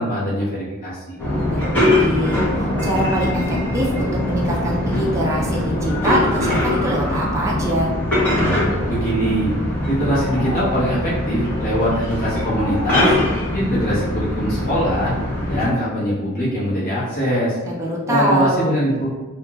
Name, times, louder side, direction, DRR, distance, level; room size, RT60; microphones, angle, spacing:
voice 1, 0.0-1.2 8.9-9.5 9.9-13.2 13.5-15.1 15.5-17.6 18.1-19.1, equal, 40° left, -10 dB, 0.8 m, -22 dB
sound 1, 1.2-15.7, left 1 dB, 10° left, 0.8 m, -22 dB
voice 2, 1.3-7.9 17.7-18.7, right 1 dB, 15° right, -4 dB, 0.3 m, -24 dB
sound 2, 5.8-8.0 9.9-11.0 12.0-13.1, left 1 dB, 80° left, 1.0 m, -33 dB
2.4 x 2.3 x 2.9 m, 1.2 s
head